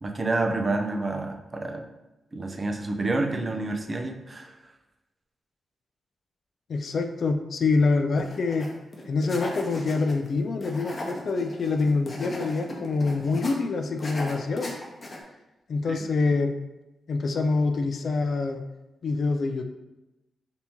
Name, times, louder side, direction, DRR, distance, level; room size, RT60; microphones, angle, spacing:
voice 1, 0.0-1.8 2.3-4.6 15.9-16.0, right 2 dB, 35° right, 4 dB, 0.4 m, -28 dB
voice 2, 6.7-8.7 9.1-14.7 15.7-16.5 17.1-18.6 19.0-19.6, left 3 dB, 65° left, 6 dB, 0.3 m, -25 dB
sound 1, 8.2-8.7 8.9-10.3 10.6-13.5 14.0-15.2, left 1 dB, 40° left, 0.7 m, -37 dB
3.5 x 2.7 x 2.9 m, 0.99 s
cardioid pair, 70°, 0 cm